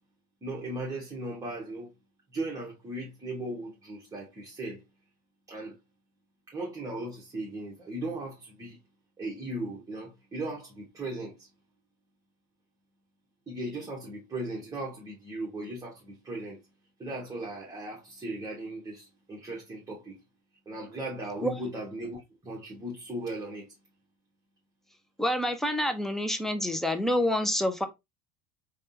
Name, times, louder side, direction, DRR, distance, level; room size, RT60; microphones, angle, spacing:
voice 1, 0.4-1.9 2.3-4.8 5.5-5.8 6.5-8.8 9.2-11.5 13.5-16.6 17.0-20.2 20.6-23.7, right 1 dB, 15° right, 1.2 m, -37 dB
voice 2, 25.2-27.8, left 1 dB, ahead, 0.6 m, -27 dB
3.4 x 2.4 x 2.7 m
supercardioid pair, 100°, 21 cm